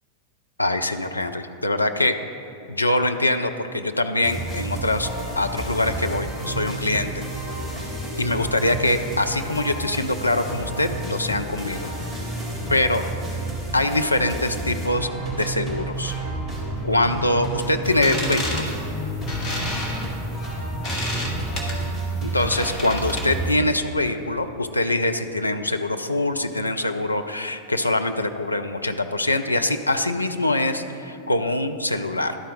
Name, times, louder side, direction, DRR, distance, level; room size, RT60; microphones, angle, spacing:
voice 1, 0.6-2.2 2.7-5.1 5.4-7.2 8.2-11.9 12.7-13.0 13.7-16.1 16.8-18.6 22.2-32.4, left 1 dB, 85° left, 6 dB, 0.4 m, -23 dB
sound 1, 4.2-23.5, right 1 dB, 15° left, 2.0 m, -30 dB
sound 2, 17.9-23.5, left 1 dB, 35° left, 1.4 m, -31 dB
11.5 x 4.5 x 5.0 m, 2.7 s
figure-of-eight pair, 90°, 0 cm